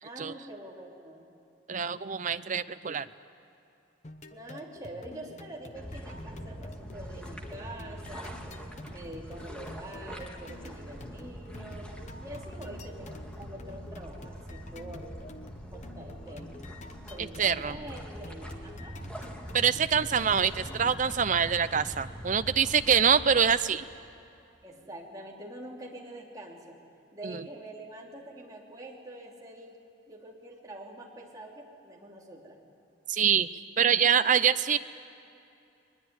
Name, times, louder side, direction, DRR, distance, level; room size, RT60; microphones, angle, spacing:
voice 1, 0.0-1.2 4.3-8.3 8.9-11.9 12.2-15.1 15.7-16.7 17.1-18.9 24.6-26.8 27.1-29.8 30.1-32.6, right 1 dB, 20° right, -2 dB, 3.2 m, -45 dB
voice 2, 1.7-3.1 17.2-17.8 19.5-23.8 27.2-27.5 33.1-33.5 33.8-34.8, right 7 dB, 40° right, 12 dB, 0.6 m, -25 dB
sound 1, 4.0-21.2, left 2 dB, 35° left, 0.9 m, -48 dB
sound 2, 5.7-23.5, equal, 5° left, 1.9 m, -43 dB
22.0 x 20.5 x 9.6 m, 2.7 s
head